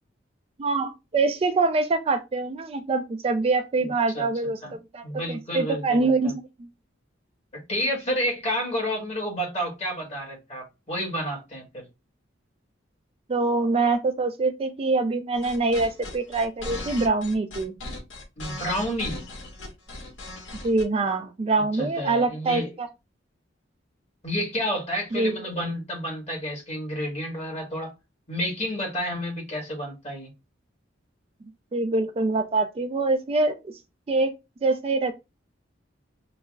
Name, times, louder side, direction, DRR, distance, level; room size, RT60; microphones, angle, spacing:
voice 1, 0.6-6.7 13.3-17.8 20.6-22.9 25.1-25.4 31.7-33.6 34.1-34.3 34.6-35.1, right 3 dB, 30° right, 0.3 m, -24 dB
voice 2, 3.8-4.3 4.6-4.7 5.0-6.4 7.5-11.9 18.4-19.2 21.7-22.7 24.2-27.9 28.3-30.3, equal, 35° left, 1.4 m, -30 dB
sound 1, 15.3-20.8, left 2 dB, 75° left, 1.1 m, -37 dB
5.6 x 2.0 x 2.3 m
head